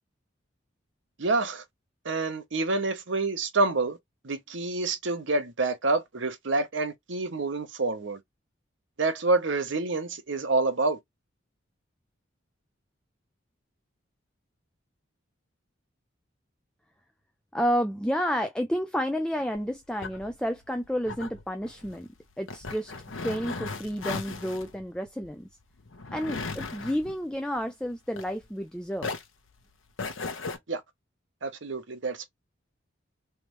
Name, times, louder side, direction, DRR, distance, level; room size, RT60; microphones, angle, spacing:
voice 1, 1.2-1.6 2.0-4.0 4.2-8.2 9.0-11.0 30.7-30.8 31.4-32.3, right 3 dB, 70° right, 0.9 m, -27 dB
voice 2, 17.5-22.1 22.4-25.5 26.1-29.2, equal, 5° left, 0.4 m, -30 dB
sound 1, 19.5-28.7 29.0-30.6, left 3 dB, 85° left, 0.9 m, -38 dB
3.4 x 3.1 x 3.0 m
head